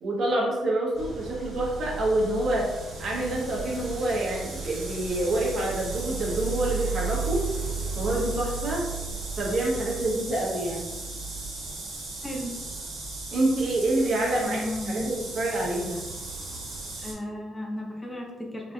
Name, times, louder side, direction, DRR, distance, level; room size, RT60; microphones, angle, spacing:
voice 1, 0.0-2.7 3.0-7.4 7.9-8.9 9.4-10.9 13.3-14.6 14.9-16.0, right 1 dB, 60° right, -4 dB, 1.1 m, -27 dB
sound 1, 0.9-17.1, right 4 dB, 85° right, 1.3 m, -35 dB
voice 2, 12.2-12.6 14.3-15.2 17.0-18.7, left 1 dB, 10° left, 0 dB, 0.6 m, -34 dB
4.0 x 2.7 x 2.3 m, 1.2 s
cardioid pair, 90°, 0 cm